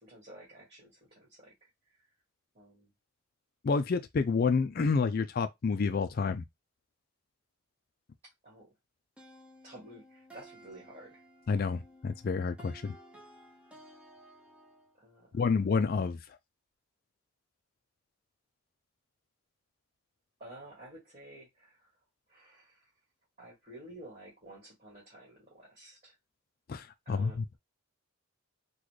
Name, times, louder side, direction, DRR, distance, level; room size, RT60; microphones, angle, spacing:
voice 1, 0.0-2.0 2.5-2.9 8.2-8.7 9.6-11.2 15.0-15.4 20.4-21.9 22.3-22.9 23.4-26.2 27.1-27.4, right 1 dB, 30° right, 1.8 m, -52 dB
voice 2, 3.6-6.4 11.5-13.0 15.3-16.2 26.7-27.6, left 4 dB, 45° left, 0.3 m, -29 dB
sound 1, 9.2-14.9, right 1 dB, 5° right, 0.6 m, -55 dB
4.0 x 2.2 x 3.1 m
head